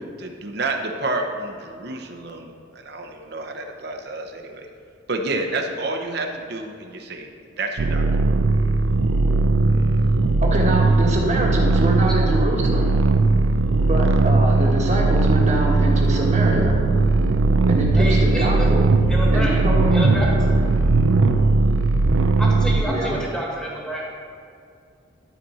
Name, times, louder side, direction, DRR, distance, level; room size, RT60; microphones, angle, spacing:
voice 1, 0.2-4.7 5.1-7.3 7.6-8.0, right 2 dB, 55° right, 3 dB, 0.9 m, -29 dB
sound 1, 7.8-22.8, right 3 dB, 80° right, 0.5 m, -18 dB
voice 2, 10.4-12.9 13.8-16.7 17.7-18.9 19.3-19.9 22.8-23.2, right 1 dB, 35° right, -2 dB, 1.3 m, -25 dB
voice 3, 17.9-18.7 19.1-19.6 19.9-20.3 22.4-24.1, equal, 5° left, -4 dB, 1.5 m, -29 dB
12.5 x 4.3 x 5.6 m, 2.3 s
head